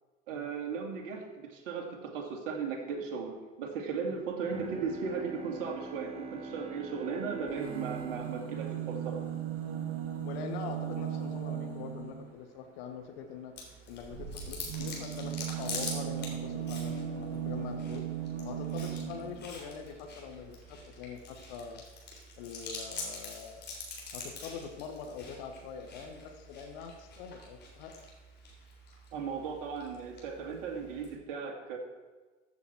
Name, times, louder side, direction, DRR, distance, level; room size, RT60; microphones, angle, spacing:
voice 1, 0.3-9.3 29.1-31.8, right 5 dB, 55° right, 2 dB, 2.4 m, -37 dB
Bowed string instrument, 4.5-10.1, right 3 dB, 15° right, 1.2 m, -45 dB
sound 1, 7.5-12.3 14.0-19.5 20.4-20.5 20.7-20.8, right 9 dB, 40° right, 1.7 m, -37 dB
voice 2, 9.8-13.5 13.9-18.1 18.4-21.8 22.4-23.8 24.1-28.0, left 6 dB, 55° left, 5 dB, 1.5 m, -44 dB
Chewing mastication, 13.6-31.2, left 3 dB, 30° left, 3.4 m, -45 dB
14.5 x 7.1 x 4.6 m, 1.3 s
figure-of-eight pair, 80°, 36 cm